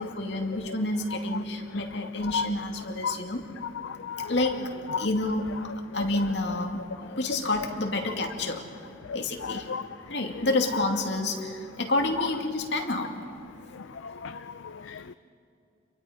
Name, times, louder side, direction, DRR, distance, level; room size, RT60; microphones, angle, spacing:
voice 1, 0.0-3.4 4.3-8.6 9.1-9.7 10.1-13.2, left 2 dB, 65° left, 2 dB, 2.4 m, -29 dB
voice 2, 3.8-4.3 4.9-5.1 9.1-9.8 14.0-15.1, left 6 dB, 80° left, 12 dB, 0.5 m, -33 dB
30.0 x 23.5 x 5.1 m, 2.6 s
head